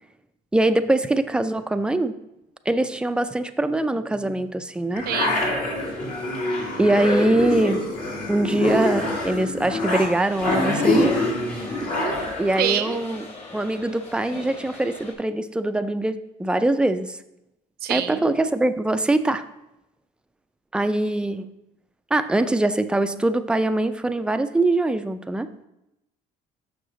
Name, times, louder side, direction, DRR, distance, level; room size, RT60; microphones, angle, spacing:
voice 1, 0.5-2.2 2.7-5.1 6.8-7.9 8.3-11.6 12.4-13.2 13.5-17.2 17.9-19.5 20.7-21.5 22.1-25.5, right 2 dB, 5° right, 9 dB, 0.4 m, -23 dB
sound 1, 4.9-12.7, left 2 dB, 60° left, 1.9 m, -25 dB
voice 2, 5.1-5.4 11.8-12.3 12.6-13.0 17.8-18.3, right 10 dB, 65° right, 10 dB, 0.7 m, -27 dB
sound 2, 10.1-15.1, left 2 dB, 40° left, 1.6 m, -42 dB
6.4 x 5.9 x 3.9 m, 0.87 s
cardioid pair, 110°, 17 cm